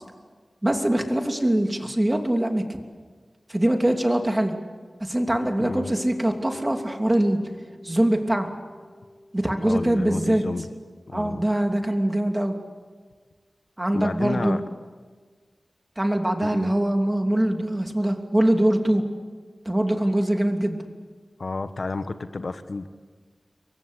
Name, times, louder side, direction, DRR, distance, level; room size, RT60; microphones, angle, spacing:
voice 1, 0.6-2.8 3.5-4.5 5.0-7.4 7.8-8.5 9.3-10.4 11.1-12.5 13.8-14.6 16.0-19.0 19.6-20.8, right 1 dB, 15° right, 4 dB, 2.9 m, -23 dB
Guitar, 5.4-10.8, left 1 dB, 30° left, 5.2 m, -44 dB
voice 2, 5.6-5.9 9.6-10.7 11.1-11.4 13.9-14.6 16.4-16.7 21.4-22.9, left 3 dB, 65° left, 9 dB, 1.2 m, -31 dB
28.5 x 23.0 x 8.5 m, 1.5 s
wide cardioid pair, 90°, 0 cm